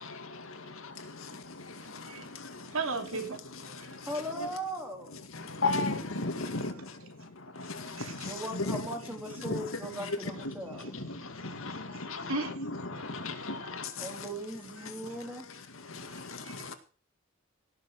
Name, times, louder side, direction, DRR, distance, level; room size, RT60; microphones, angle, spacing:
voice 1, 0.0-2.6 3.7-4.0 5.3-6.9 7.6-8.3 8.7-8.8 9.4-9.5 10.7-10.8 11.1-12.3 12.6-14.1 15.9-16.7, left 3 dB, 75° left, 2.1 m, -36 dB
voice 2, 2.6-3.4 3.9-4.0 6.5-6.8 7.6-8.3 10.8-10.9 11.3-11.6 11.9-12.6 13.6-13.7 16.1-16.7, right 3 dB, 75° right, 3.1 m, -38 dB
voice 3, 4.1-5.3 8.2-11.0 14.0-15.4, right 1 dB, 10° right, 3.8 m, -39 dB
18.0 x 7.2 x 6.7 m
head